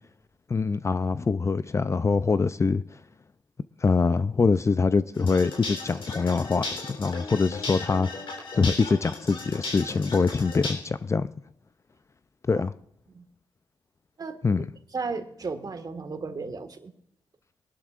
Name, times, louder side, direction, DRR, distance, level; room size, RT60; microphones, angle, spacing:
voice 1, 0.5-2.8 3.8-8.1 8.5-11.3 12.5-12.7 14.4-14.7, left 4 dB, 30° left, 0.5 m, -24 dB
sound 1, 5.1-10.7, left 3 dB, 65° left, 3.7 m, -36 dB
voice 2, 14.9-16.9, right 4 dB, 45° right, 1.7 m, -34 dB
23.5 x 12.0 x 2.5 m
cardioid pair, 70°, 9 cm